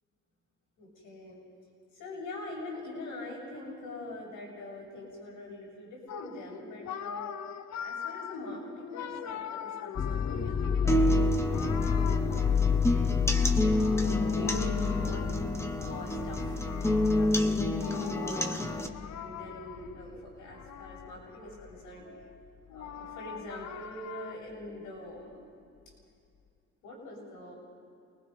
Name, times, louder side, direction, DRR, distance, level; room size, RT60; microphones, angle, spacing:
voice 1, 0.8-1.4 1.9-7.4 7.8-13.1 13.5-15.3 15.8-22.1 22.7-25.5 26.8-27.6, left 1 dB, 85° left, -2 dB, 7.2 m, -44 dB
sound 1, 6.1-13.1 13.7-20.0 20.5-21.6 22.0-24.4, left 9 dB, 65° left, 0.9 m, -43 dB
sound 2, 10.0-19.4 19.8-20.2 20.9-21.2, left 7 dB, 30° left, 0.6 m, -30 dB
sound 3, 10.9-18.9, equal, 10° left, 1.5 m, -29 dB
30.0 x 20.0 x 5.3 m, 2.6 s
cardioid pair, 90°, 30 cm